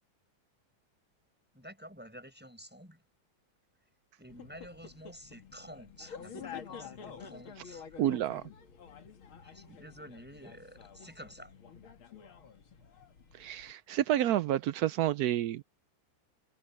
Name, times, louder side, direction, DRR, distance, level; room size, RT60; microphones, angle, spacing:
voice 1, 1.5-3.0 4.2-8.0 9.4-11.5, equal, 5° right, 7.0 m, -50 dB
sound 1, 4.3-13.7, left 7 dB, 85° left, 2.7 m, -49 dB
voice 2, 8.0-8.4 13.3-15.6, right 12 dB, 80° right, 0.8 m, -29 dB
omnidirectional pair, 2.2 m